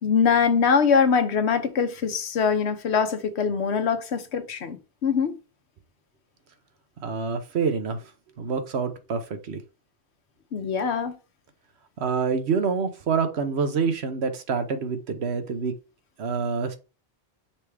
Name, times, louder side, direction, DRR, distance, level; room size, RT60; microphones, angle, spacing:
voice 1, 0.0-5.3 10.5-11.1, left 6 dB, 90° left, 1.2 m, -23 dB
voice 2, 7.0-8.0 8.4-9.2 9.5-9.6 12.0-15.7 16.2-16.8, right 5 dB, 80° right, 1.2 m, -26 dB
5.8 x 3.5 x 4.7 m
omnidirectional pair, 1.1 m